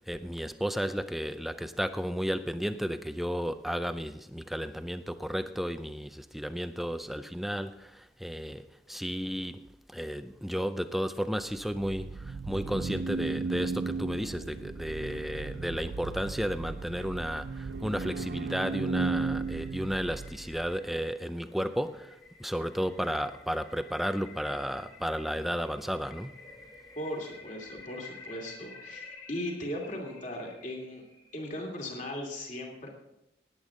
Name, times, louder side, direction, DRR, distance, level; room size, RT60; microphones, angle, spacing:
voice 1, 0.1-7.9 8.2-8.6 8.9-9.6 9.9-12.1 12.5-22.1 22.4-26.3, equal, ahead, 10 dB, 0.4 m, -33 dB
sound 1, 11.4-20.8, right 4 dB, 60° right, 0.5 m, -35 dB
sound 2, 18.8-31.6, left 4 dB, 25° left, 2.4 m, -52 dB
voice 2, 27.0-31.0 31.3-32.9, left 1 dB, 40° left, 0 dB, 2.7 m, -38 dB
17.5 x 10.0 x 3.8 m, 0.84 s
head